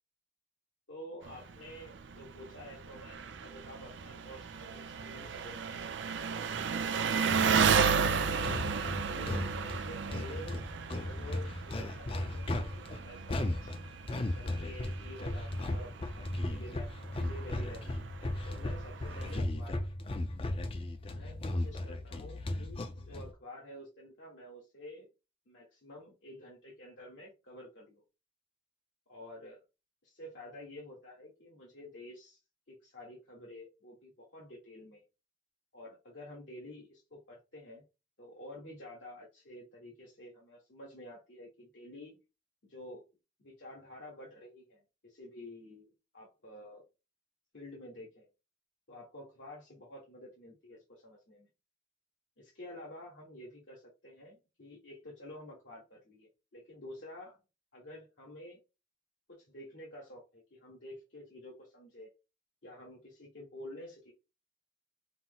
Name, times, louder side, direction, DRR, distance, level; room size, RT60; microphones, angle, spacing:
voice 1, 0.9-5.8 6.1-6.7 8.0-13.7 14.3-18.1 18.4-19.8 21.1-25.1 25.5-28.0 29.1-29.6 30.0-32.4 32.7-35.0 35.7-37.8 38.2-42.2 42.6-43.0 43.4-45.9 46.1-46.9 47.5-48.3 48.9-51.5 52.4-57.4 57.7-58.6 59.3-62.1 62.6-64.1, left 1 dB, 70° left, -4 dB, 1.5 m, -50 dB
Engine, 1.2-19.4, right 6 dB, 70° right, 0.5 m, -34 dB
sound 1, 7.2-23.3, left 1 dB, 30° left, 0.4 m, -36 dB
5.8 x 2.0 x 3.9 m, 0.27 s
head